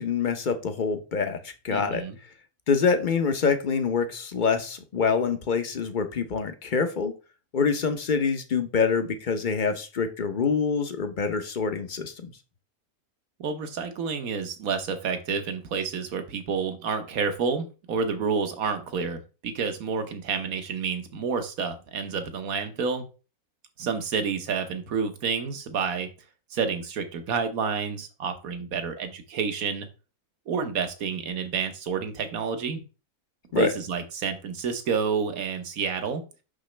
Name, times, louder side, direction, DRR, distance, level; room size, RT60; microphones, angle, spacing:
voice 1, 0.0-2.0 2.7-7.1 7.5-12.3 33.5-33.7, left 5 dB, 40° left, 8 dB, 0.8 m, -26 dB
voice 2, 1.7-2.2 13.4-23.0 23.8-26.1 26.5-29.9 30.5-32.8 33.6-36.2, right 5 dB, 70° right, 8 dB, 1.4 m, -29 dB
6.2 x 6.0 x 3.3 m, 0.32 s
omnidirectional pair, 1.6 m